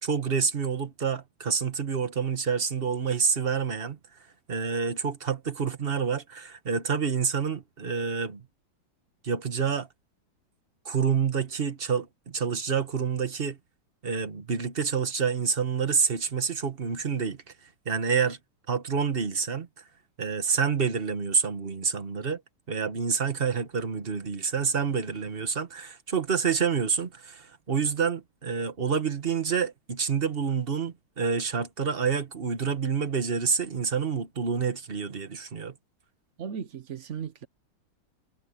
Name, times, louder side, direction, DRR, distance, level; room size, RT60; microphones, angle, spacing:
voice 1, 0.0-4.0 4.5-8.5 9.2-9.9 10.8-13.6 14.0-17.4 17.8-18.4 18.7-19.7 20.2-22.4 22.7-35.7, right 6 dB, 30° right, 1.3 m, -28 dB
voice 2, 36.4-37.5, right 7 dB, 70° right, 0.7 m, -36 dB
omnidirectional pair, 2.4 m